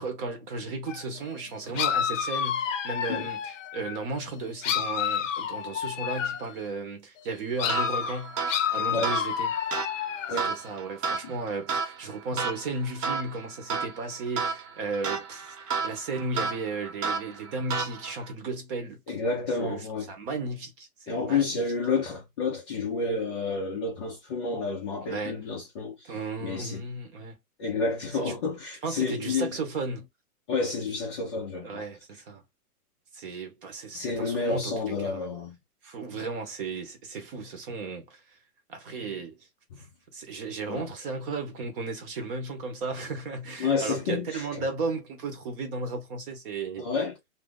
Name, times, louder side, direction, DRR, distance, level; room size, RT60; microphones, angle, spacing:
voice 1, 0.0-8.4 8.7-9.5 10.3-19.2 19.6-21.6 25.0-25.4 26.0-27.4 28.2-28.3 28.8-30.1 31.6-32.4 33.1-35.3 35.8-38.2 38.7-39.5 39.8-39.9 40.1-46.9, right 3 dB, 35° right, 1.0 m, -35 dB
sound 1, 0.9-1.0 1.8-4.0 4.6-6.5 7.6-10.5, left 9 dB, 55° left, 0.7 m, -29 dB
sound 2, 7.7-18.3, right 5 dB, 90° right, 1.3 m, -33 dB
voice 2, 19.1-20.1 21.1-26.1 26.4-26.8 27.6-29.5 30.5-31.8 33.9-35.6 39.8-39.9 40.7-40.9 43.6-44.6 46.8-47.2, left 4 dB, 20° left, 0.5 m, -30 dB
2.6 x 2.4 x 3.7 m
hypercardioid pair, 150°, 45 cm